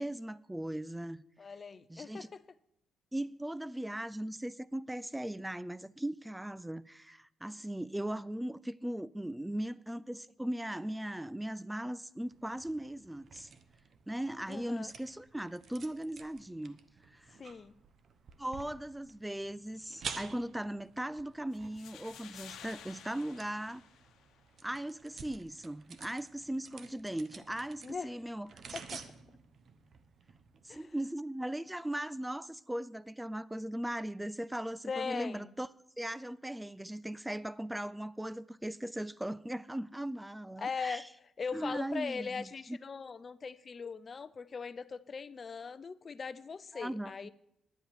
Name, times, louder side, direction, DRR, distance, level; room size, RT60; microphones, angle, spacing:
voice 1, 0.0-1.2 1.9-2.3 3.1-13.5 14.1-16.8 17.1-17.3 18.4-23.8 24.6-28.5 30.6-35.7 36.0-41.0 41.5-42.8 46.7-47.3, right 1 dB, 5° right, 0.3 m, -38 dB
voice 2, 1.4-2.4 14.5-14.9 17.3-17.7 27.8-28.2 28.7-29.0 30.7-30.9 34.9-35.5 40.6-41.1 41.4-47.3, left 5 dB, 40° left, 0.6 m, -40 dB
sound 1, 12.3-30.8, right 6 dB, 55° right, 1.0 m, -51 dB
sound 2, 21.5-24.5, left 9 dB, 80° left, 1.0 m, -52 dB
10.5 x 7.7 x 6.9 m
cardioid pair, 90°, 0 cm